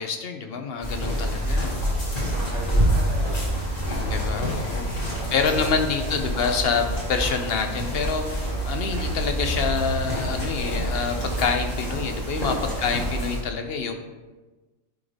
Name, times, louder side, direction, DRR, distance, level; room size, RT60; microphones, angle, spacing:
voice 1, 0.0-1.8 3.9-13.9, left 5 dB, 60° left, 5 dB, 0.7 m, -27 dB
sound 1, 0.8-13.4, equal, 30° left, 2.1 m, -27 dB
voice 2, 2.1-4.5 5.2-5.7 6.0-6.2 12.7-13.0, right 1 dB, 55° right, -3 dB, 1.3 m, -40 dB
10.5 x 3.6 x 3.4 m, 1.2 s
omnidirectional pair, 1.5 m